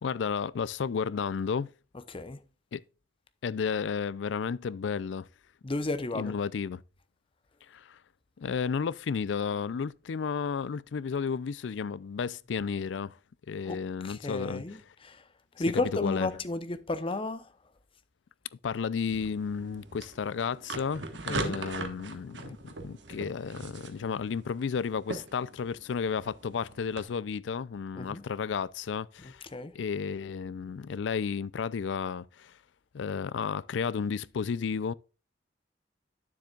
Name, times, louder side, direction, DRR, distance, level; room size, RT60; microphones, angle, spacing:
voice 1, 0.0-1.7 2.7-2.8 3.4-5.3 6.1-6.8 7.7-8.0 8.4-13.2 13.5-14.8 16.0-16.3 18.6-29.5 29.7-32.6 32.9-34.9, left 6 dB, 85° left, 0.4 m, -32 dB
voice 2, 2.1-2.4 5.6-6.3 13.7-13.8 14.0-15.2 15.6-17.5 21.3-21.7 27.9-28.2 29.5-29.7, left 2 dB, 30° left, 0.7 m, -33 dB
sound 1, 19.1-27.0, right 3 dB, 75° right, 1.3 m, -41 dB
9.4 x 7.4 x 2.4 m
head